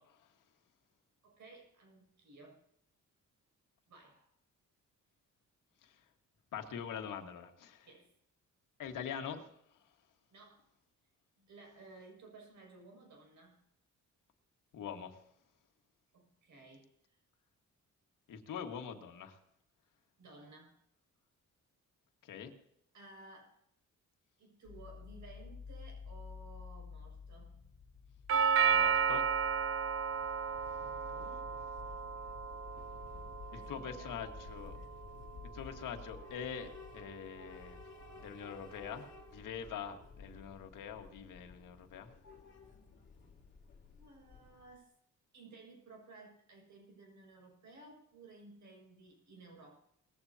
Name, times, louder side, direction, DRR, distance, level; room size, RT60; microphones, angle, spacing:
voice 1, 1.2-2.6 3.9-4.3 7.8-8.1 10.3-10.6 11.4-13.6 16.1-17.2 20.2-20.8 22.9-23.6 24.4-27.7 30.6-31.5 33.5-34.1 34.7-34.9 43.2-43.3 43.9-44.9 45.3-49.8, right 3 dB, 65° right, 1 dB, 6.7 m, -57 dB
voice 2, 6.5-7.9 8.8-9.8 14.7-15.2 18.3-19.4 22.2-22.5 28.7-29.2 33.5-34.8 35.5-37.8 38.2-42.2, left 7 dB, 80° left, 5 dB, 1.8 m, -44 dB
sound 1, 24.6-42.1, left 5 dB, 65° left, 1.6 m, -53 dB
Doorbell, 28.3-36.3, right 6 dB, 45° right, 0.5 m, -34 dB
Train / Subway metro underground, 30.0-44.8, left 5 dB, 35° left, 2.5 m, -56 dB
19.5 x 15.0 x 2.9 m, 0.75 s
wide cardioid pair, 175°, 31 cm